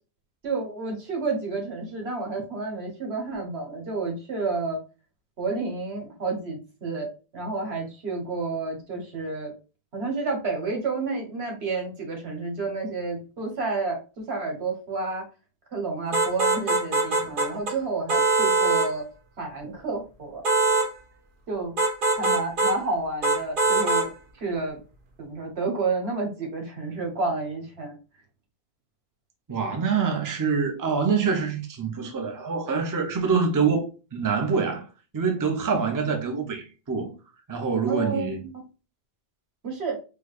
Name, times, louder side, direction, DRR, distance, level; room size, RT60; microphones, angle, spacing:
voice 1, 0.4-4.8 5.4-9.5 9.9-15.2 15.7-19.0 19.4-20.4 21.5-21.7 22.2-24.8 25.2-28.0 37.9-38.4 39.6-40.0, right 3 dB, 85° right, 1.4 m, -30 dB
sound 1, 16.1-17.8 18.1-18.9 20.4-20.9 21.8-22.8 23.2-24.1, right 2 dB, 60° right, 0.8 m, -22 dB
voice 2, 29.5-34.9 35.1-37.1 37.5-38.4, right 5 dB, 25° right, 0.5 m, -25 dB
4.8 x 2.3 x 2.4 m
omnidirectional pair, 1.1 m